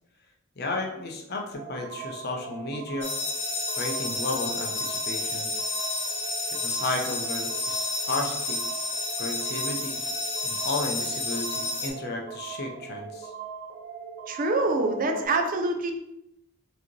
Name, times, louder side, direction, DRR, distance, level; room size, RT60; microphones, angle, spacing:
voice 1, 0.6-3.1 3.8-5.5 5.9-6.0 6.6-8.6 9.2-10.0 10.4-13.3, left 2 dB, 45° left, 1 dB, 0.6 m, -33 dB
sound 1, 1.5-15.3, right 6 dB, 55° right, 1.0 m, -40 dB
sound 2, 3.0-11.9, left 3 dB, 70° left, 1.4 m, -31 dB
voice 2, 14.3-16.0, right 2 dB, 40° right, 4 dB, 0.5 m, -25 dB
4.7 x 2.9 x 3.1 m, 0.84 s
head